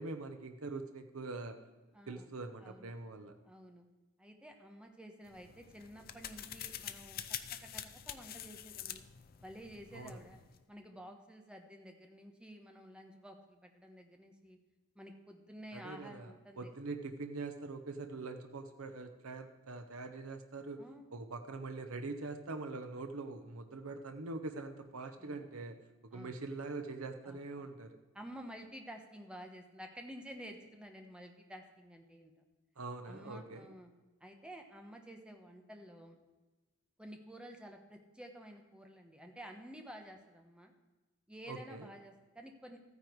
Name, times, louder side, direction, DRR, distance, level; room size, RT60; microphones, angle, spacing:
voice 1, 0.0-1.6 2.1-3.3 9.9-10.2 15.7-20.8 21.1-28.0 32.8-33.7 41.5-41.9, right 3 dB, 80° right, 6 dB, 0.9 m, -43 dB
voice 2, 1.9-2.3 2.6-3.0 3.4-3.8 4.2-9.0 9.4-10.4 10.7-14.6 14.9-16.7 20.8-21.0 25.2-25.5 26.1-26.4 27.2-27.7 28.1-32.3 33.1-33.9 34.2-36.2 37.0-40.7 41.3-42.8, equal, 5° right, 3 dB, 1.2 m, -51 dB
sound 1, 5.3-10.6, left 10 dB, 45° left, 0.6 m, -46 dB
14.0 x 9.6 x 4.7 m, 1.2 s
head